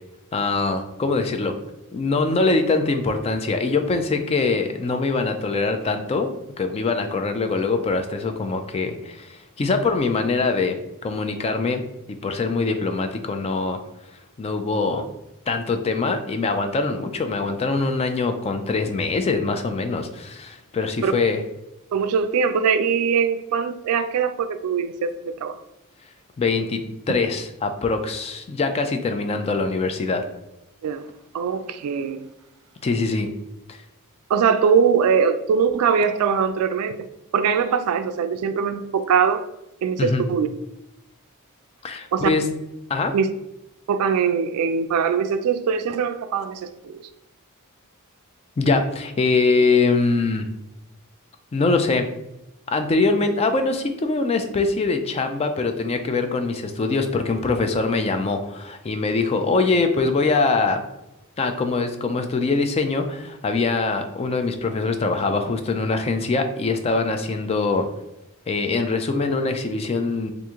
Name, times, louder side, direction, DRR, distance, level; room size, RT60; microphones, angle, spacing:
voice 1, 0.3-1.6 1.9-11.8 12.1-13.8 14.4-15.1 15.5-21.4 26.4-30.2 32.8-33.3 33.7-33.8 40.0-40.2 41.8-42.5 42.9-43.1 48.6-50.5 51.5-52.1 52.7-60.8 61.4-67.9 68.5-70.3, left 3 dB, 30° left, 7 dB, 0.3 m, -23 dB
voice 2, 21.9-25.1 25.4-25.5 30.8-31.0 31.3-32.2 34.3-37.0 37.3-39.4 39.8-40.5 42.1-42.3 43.1-43.3 43.9-47.0, right 6 dB, 75° right, 11 dB, 0.3 m, -21 dB
2.9 x 2.5 x 3.6 m, 0.90 s
head